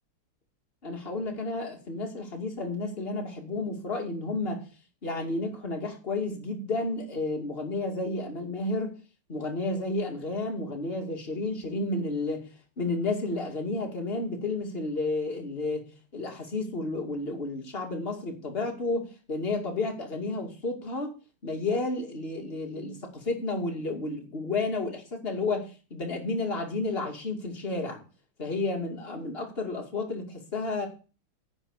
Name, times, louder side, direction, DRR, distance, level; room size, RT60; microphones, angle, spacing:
voice 1, 0.8-4.6 5.0-8.9 9.3-12.5 12.8-21.2 21.4-28.0 28.4-30.9, left 2 dB, 25° left, 2 dB, 2.5 m, -31 dB
9.8 x 5.9 x 8.2 m, 0.34 s
omnidirectional pair, 2.4 m